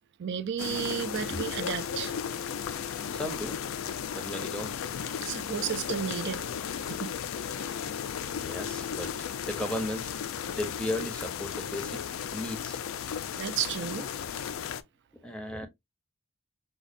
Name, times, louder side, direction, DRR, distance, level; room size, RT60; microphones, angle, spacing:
voice 1, 0.2-2.1 5.2-6.4 6.9-7.1 7.4-7.7 13.3-14.1, right 8 dB, 55° right, 0.4 m, -33 dB
sound 1, 0.6-14.8, left 8 dB, 65° left, 0.4 m, -35 dB
voice 2, 3.1-3.6 4.1-4.8 8.3-10.1 10.5-12.0 12.3-12.8 15.2-15.7, left 1 dB, 5° left, 0.6 m, -35 dB
5.3 x 2.3 x 2.4 m
head